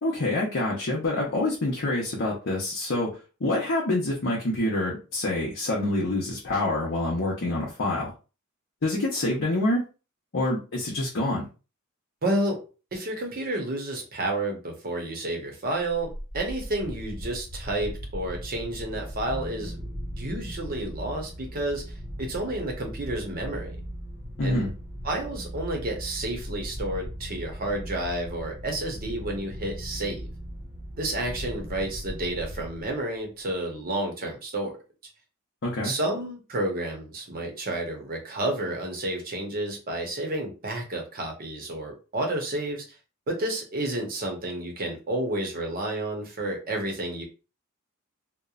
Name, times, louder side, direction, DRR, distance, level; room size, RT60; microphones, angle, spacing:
voice 1, 0.0-3.1 3.4-8.1 8.8-9.8 10.3-11.4 24.4-24.7 35.6-35.9, left 2 dB, 55° left, -4 dB, 0.7 m, -26 dB
voice 2, 12.2-12.6 12.9-19.8 20.2-23.8 24.4-24.7 25.0-30.3 31.0-34.8 35.8-42.8 43.3-47.2, right 1 dB, 45° right, 2 dB, 0.7 m, -30 dB
sound 1, 15.8-33.2, equal, 5° right, 0.9 m, -38 dB
2.9 x 2.0 x 2.3 m, 0.33 s
head